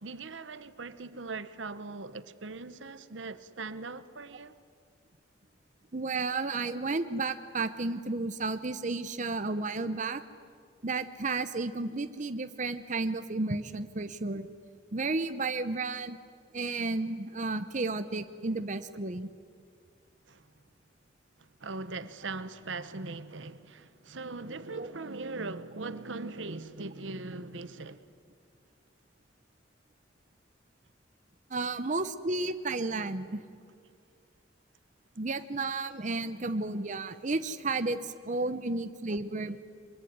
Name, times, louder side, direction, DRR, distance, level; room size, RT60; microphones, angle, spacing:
voice 1, 0.0-4.5 20.3-20.5 21.4-28.0, right 3 dB, 80° right, 1.1 m, -40 dB
voice 2, 5.9-10.2 10.8-14.5 14.9-16.2 16.5-19.3 24.7-24.9 31.5-33.4 35.2-39.6, right 3 dB, 40° right, 0.8 m, -32 dB
23.5 x 22.5 x 9.6 m
head